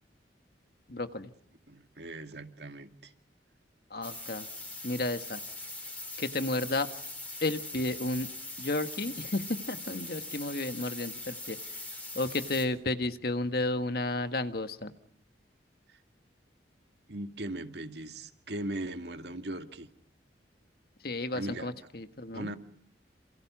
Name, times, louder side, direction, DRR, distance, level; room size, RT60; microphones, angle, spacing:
voice 1, 0.9-1.3 3.9-4.5 4.8-5.4 6.2-6.9 7.4-8.3 8.6-11.6 12.2-14.9 21.0-22.5, left 2 dB, 60° left, 9 dB, 1.7 m, -32 dB
voice 2, 1.7-3.1 15.9-16.0 17.1-19.9 21.3-21.7 22.3-22.6, right 1 dB, 75° right, 7 dB, 2.1 m, -39 dB
sound 1, 4.0-12.6, left 2 dB, 10° left, 3.9 m, -41 dB
28.5 x 27.0 x 6.2 m, 0.66 s
head